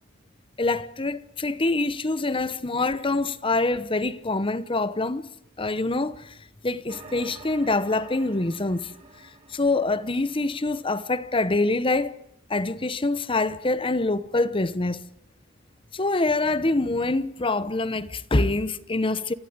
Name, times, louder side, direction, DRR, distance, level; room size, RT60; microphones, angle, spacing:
voice 1, 0.6-5.3 5.6-6.2 6.6-8.9 9.5-12.2 12.5-15.0 15.9-19.3, left 2 dB, 25° left, 0.9 m, -25 dB
sound 1, 6.9-11.3, right 2 dB, 35° right, 6.3 m, -48 dB
28.5 x 15.0 x 9.5 m
head